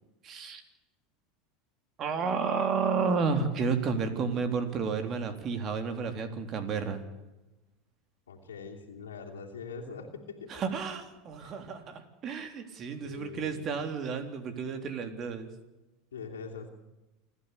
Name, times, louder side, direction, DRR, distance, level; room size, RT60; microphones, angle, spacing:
voice 1, 0.2-0.6 2.0-7.0 10.5-15.5, right 5 dB, 40° right, 8 dB, 3.5 m, -31 dB
voice 2, 8.3-10.5 11.4-11.5 13.0-13.8 16.1-16.7, left 5 dB, 90° left, -1 dB, 2.9 m, -43 dB
28.5 x 11.0 x 8.3 m, 1.0 s
hypercardioid pair, 90°, 0 cm